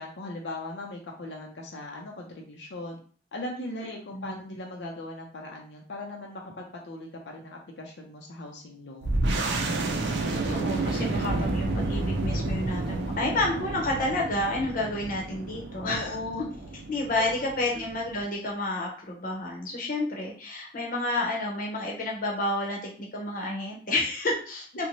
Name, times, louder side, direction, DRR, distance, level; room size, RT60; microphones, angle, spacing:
voice 1, 0.0-3.0 3.3-9.3 15.8-16.5 17.1-17.5 17.7-17.8, left 2 dB, 90° left, 0 dB, 0.5 m, -39 dB
sound 1, 9.0-18.2, right 2 dB, 90° right, 0.4 m, -30 dB
voice 2, 10.3-16.1 16.9-24.9, left 2 dB, 50° left, -1 dB, 0.7 m, -30 dB
2.6 x 2.1 x 2.9 m, 0.42 s
head